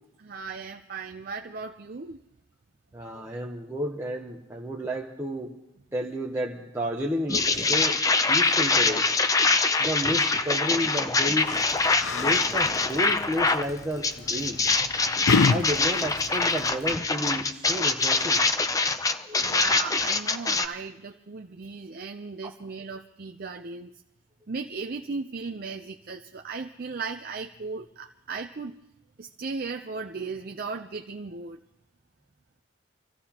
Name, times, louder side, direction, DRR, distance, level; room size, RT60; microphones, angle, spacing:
voice 1, 0.2-2.2 19.4-23.9 24.5-28.7 29.2-31.6, right 4 dB, 45° right, 4 dB, 0.5 m, -36 dB
voice 2, 2.9-5.5 5.9-8.0 8.3-9.1 9.8-11.6 12.1-14.6 15.5-18.4 19.3-19.6 22.4-22.5, equal, 15° right, -3 dB, 0.9 m, -31 dB
sound 1, 7.3-13.7 14.0-20.7, left 3 dB, 15° left, 0.5 m, -24 dB
Yell, 11.4-16.9, left 4 dB, 75° left, 0.6 m, -30 dB
26.0 x 15.5 x 2.9 m, 0.81 s
head